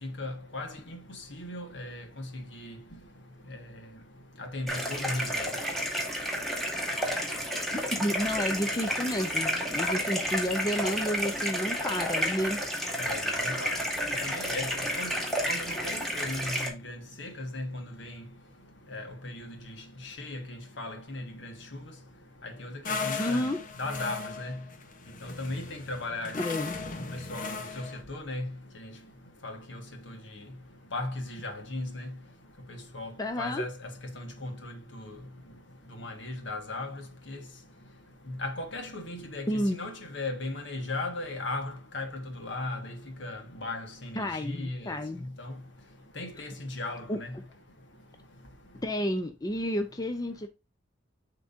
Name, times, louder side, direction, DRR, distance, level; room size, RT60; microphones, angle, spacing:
voice 1, 0.0-2.7 4.4-5.5 13.0-13.8 14.2-15.1 15.5-18.2 18.9-19.5 20.0-21.8 22.4-23.4 23.8-24.6 25.2-26.4 27.0-28.5 28.8-28.9 29.4-30.2 30.9-32.1 32.7-33.1 33.4-35.2 36.0-37.4 38.3-45.5 46.1-47.3, left 2 dB, 65° left, 1.7 m, -37 dB
sound 1, 4.7-16.7, equal, ahead, 1.8 m, -31 dB
voice 2, 7.7-12.6 23.2-23.6 26.3-26.8 33.2-33.6 39.5-39.8 44.2-45.2 47.1-47.2 48.8-50.5, equal, 20° left, 0.6 m, -30 dB
sound 2, 22.8-28.0, left 4 dB, 45° left, 1.0 m, -37 dB
10.5 x 3.7 x 2.6 m
head